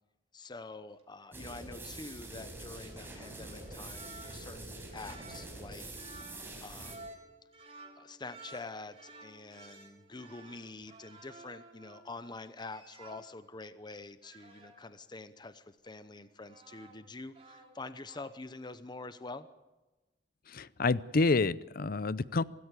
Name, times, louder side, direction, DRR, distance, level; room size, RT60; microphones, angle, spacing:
voice 1, 0.3-5.9 6.6-7.1 8.0-19.5, left 3 dB, 25° left, 12 dB, 0.8 m, -46 dB
sound 1, 1.0-1.4 2.6-13.4 14.2-14.8 15.9-17.1 17.3-18.3, right 2 dB, 35° right, 3.2 m, -54 dB
sound 2, 1.3-7.0, right 2 dB, 15° right, 5.1 m, -45 dB
voice 2, 20.5-22.4, left 3 dB, 55° left, 18 dB, 0.6 m, -28 dB
25.5 x 13.5 x 8.3 m, 1.1 s
head